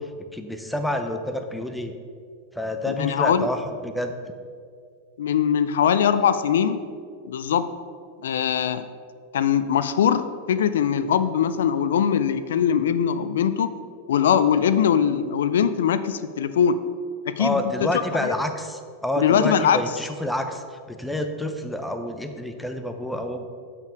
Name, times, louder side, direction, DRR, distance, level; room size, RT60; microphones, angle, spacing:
voice 1, 0.0-1.9 2.5-4.3 17.4-23.5, left 1 dB, 5° left, 6 dB, 0.6 m, -28 dB
voice 2, 2.9-3.5 5.2-6.9 7.2-7.7 8.2-8.9 9.3-13.7 14.1-16.8 17.3-17.9 18.2-18.3 19.2-19.8, left 8 dB, 85° left, 13 dB, 0.4 m, -21 dB
6.9 x 5.7 x 4.6 m, 2.1 s
supercardioid pair, 130°, 0 cm